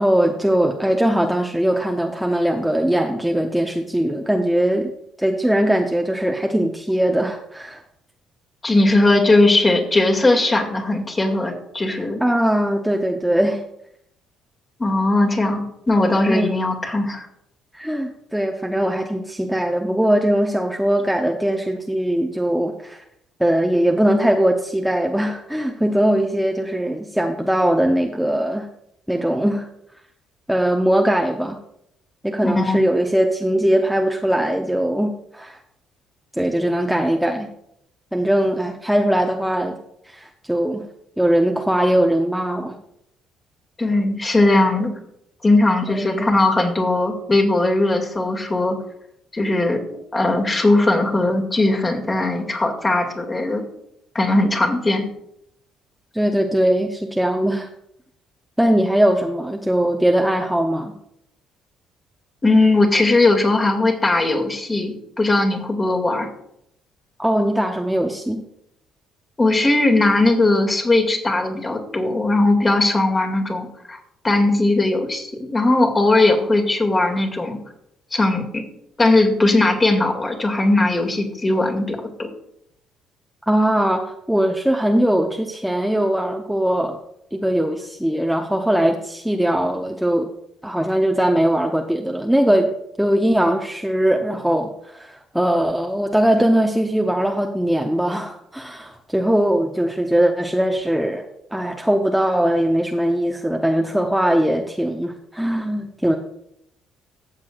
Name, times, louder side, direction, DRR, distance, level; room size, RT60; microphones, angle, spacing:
voice 1, 0.0-4.9 5.2-7.8 12.2-13.6 16.3-16.6 17.7-23.0 23.4-28.7 29.1-29.7 30.5-31.6 32.2-35.6 36.4-37.5 38.1-39.8 40.0-40.9 41.2-42.8 45.9-46.3 56.1-57.7 58.6-60.9 67.2-68.4 83.5-87.0 87.3-90.3 90.6-92.7 93.0-101.2 101.5-106.2, right 1 dB, 5° right, 2 dB, 0.9 m, -20 dB
voice 2, 8.6-12.2 14.8-17.3 32.4-32.8 43.8-44.9 45.4-48.8 49.3-49.8 50.1-53.6 54.1-55.0 62.4-66.3 69.4-74.0 74.2-77.6 78.1-78.6 79.0-82.3, left 2 dB, 25° left, 2 dB, 2.3 m, -18 dB
15.0 x 7.3 x 2.5 m, 0.76 s
hypercardioid pair, 50°, 0 cm